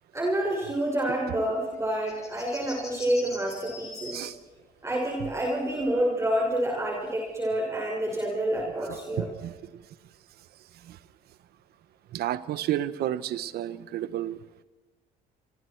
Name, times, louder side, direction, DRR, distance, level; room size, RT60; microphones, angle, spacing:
voice 1, 0.1-4.2 4.8-9.3, right 1 dB, 15° right, -2 dB, 6.3 m, -28 dB
sound 1, 1.5-4.2 6.2-6.3 7.3-7.4, left 2 dB, 20° left, 6.6 m, -43 dB
voice 2, 8.9-9.5 10.9-11.0 12.1-14.4, right 12 dB, 70° right, 15 dB, 1.1 m, -31 dB
28.5 x 26.5 x 4.7 m, 1.1 s
cardioid pair, 110°, 17 cm